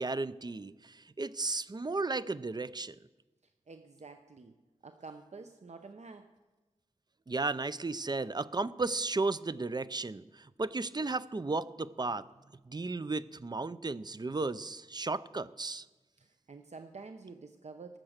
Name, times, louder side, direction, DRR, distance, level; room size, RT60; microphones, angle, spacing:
voice 1, 0.0-2.9 7.3-12.3 12.7-15.9, right 3 dB, 35° right, 16 dB, 0.5 m, -34 dB
voice 2, 3.7-4.5 4.8-6.3 16.5-18.0, right 4 dB, 60° right, 7 dB, 0.8 m, -48 dB
19.0 x 7.6 x 6.5 m, 1.2 s
wide cardioid pair, 70°, 13 cm